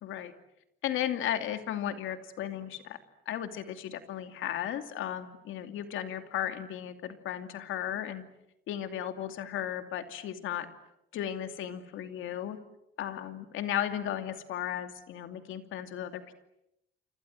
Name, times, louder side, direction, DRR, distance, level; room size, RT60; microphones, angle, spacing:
voice 1, 0.0-0.3 0.8-3.0 3.3-8.2 8.7-10.7 11.1-12.6 13.0-16.3, left 10 dB, 85° left, 8 dB, 2.7 m, -35 dB
30.0 x 25.5 x 7.8 m, 0.83 s
cardioid pair, 90°, 20 cm